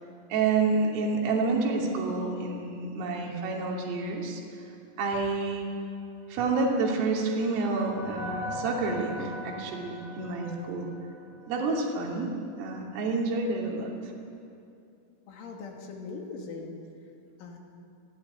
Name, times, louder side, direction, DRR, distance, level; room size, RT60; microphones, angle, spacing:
voice 1, 0.3-4.4 5.0-5.7 6.3-10.9 11.5-12.3 12.6-14.1, right 3 dB, 75° right, -1 dB, 5.4 m, -29 dB
sound 1, 6.8-11.8, left 1 dB, 50° left, 8.1 m, -41 dB
voice 2, 15.3-16.8 17.4-17.6, left 4 dB, 70° left, 1 dB, 5.0 m, -40 dB
27.5 x 17.5 x 9.5 m, 2.6 s
omnidirectional pair, 5.9 m